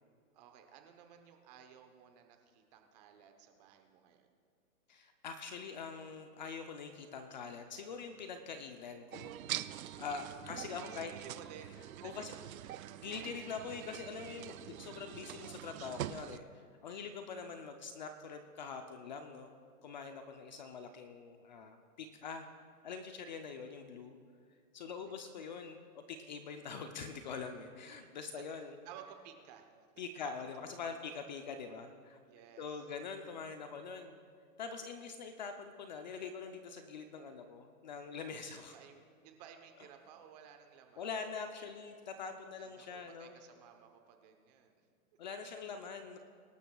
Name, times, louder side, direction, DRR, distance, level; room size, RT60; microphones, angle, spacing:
voice 1, 0.3-4.3 10.7-13.0 25.0-25.2 27.8-28.4 28.8-29.7 32.2-32.9 38.6-41.1 42.6-44.9, right 8 dB, 25° right, 5 dB, 0.9 m, -56 dB
voice 2, 4.9-9.4 10.0-11.1 12.0-12.3 13.0-19.5 19.8-22.5 22.8-24.2 24.7-28.7 30.0-32.2 32.6-34.2 34.6-38.7 41.0-43.3 45.2-46.2, left 5 dB, 30° left, 6 dB, 0.6 m, -44 dB
sound 1, 9.1-16.4, right 12 dB, 65° right, 0.6 m, -44 dB
23.5 x 12.5 x 2.3 m, 2.2 s
hypercardioid pair, 155°, 45 cm